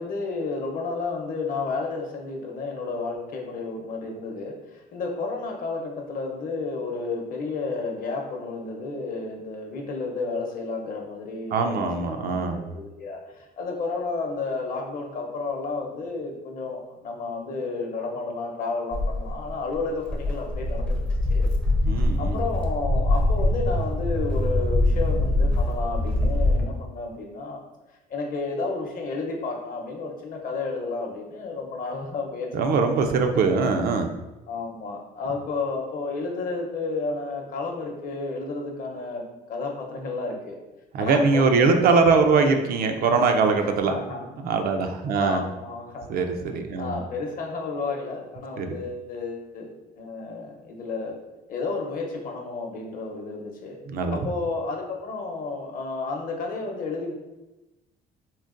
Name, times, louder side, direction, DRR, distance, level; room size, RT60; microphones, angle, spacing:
voice 1, 0.0-12.2 12.5-13.2 13.6-21.5 22.2-27.6 28.1-33.2 34.5-39.2 39.5-40.6 41.0-42.5 43.9-44.3 45.2-46.2 46.8-49.7 50.0-51.1 51.5-53.8 54.1-57.1, left 3 dB, 55° left, 1 dB, 0.7 m, -31 dB
voice 2, 11.5-12.6 21.9-22.4 32.5-34.1 40.9-43.9 44.4-45.4 46.1-47.0 48.6-48.7 53.9-54.2, right 4 dB, 60° right, 5 dB, 0.4 m, -22 dB
Walk footsteps, 18.9-26.6, left 1 dB, 5° left, 0.4 m, -23 dB
3.8 x 2.2 x 2.4 m, 1.0 s
cardioid pair, 110°, 17 cm